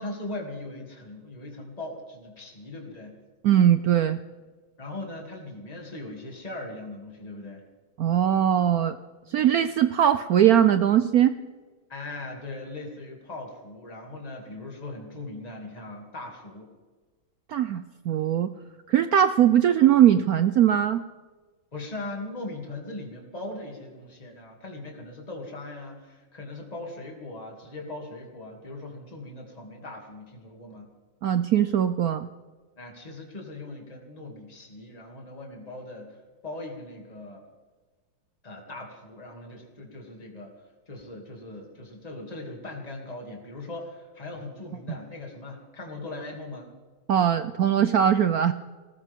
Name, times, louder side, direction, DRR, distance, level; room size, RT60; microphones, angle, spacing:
voice 1, 0.0-3.2 4.8-7.6 11.9-16.7 21.7-30.9 32.8-37.5 38.4-40.5 40.9-46.7, left 2 dB, 20° left, 1 dB, 2.6 m, -39 dB
voice 2, 3.4-4.2 8.0-9.0 9.3-11.4 17.5-18.5 18.9-21.0 31.2-32.3 47.1-48.5, right 10 dB, 75° right, 11 dB, 0.8 m, -20 dB
21.5 x 18.5 x 3.6 m, 1.3 s
omnidirectional pair, 2.2 m